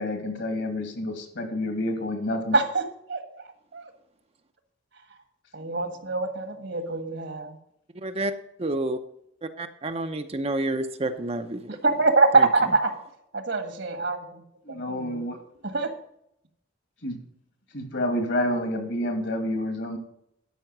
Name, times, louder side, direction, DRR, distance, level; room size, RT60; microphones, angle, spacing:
voice 1, 0.0-2.6 14.6-15.4 17.0-17.2 17.7-20.0, left 1 dB, 65° left, 5 dB, 2.3 m, -29 dB
voice 2, 2.5-2.8 3.1-3.4 3.7-3.8 5.5-7.6 11.7-12.9 13.3-14.4 14.7-15.2 15.6-15.9, right 3 dB, 65° right, 8 dB, 1.5 m, -24 dB
voice 3, 8.0-8.3 8.6-9.0 9.6-11.8 12.3-12.5, right 2 dB, 30° right, 7 dB, 0.6 m, -29 dB
12.5 x 5.8 x 6.0 m, 0.75 s
head